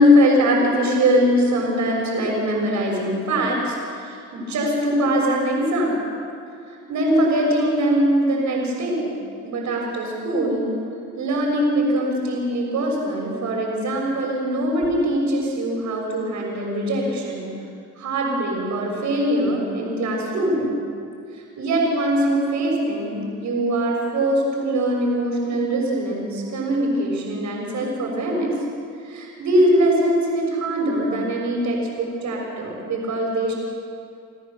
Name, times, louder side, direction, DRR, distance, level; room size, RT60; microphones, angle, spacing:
voice 1, 0.0-6.0 6.7-9.1 9.4-10.7 11.2-17.5 18.0-20.7 21.6-28.5 29.0-33.5, equal, 70° right, -1 dB, 6.5 m, -22 dB
30.0 x 14.0 x 7.1 m, 2.5 s
cardioid pair, 90°, 30 cm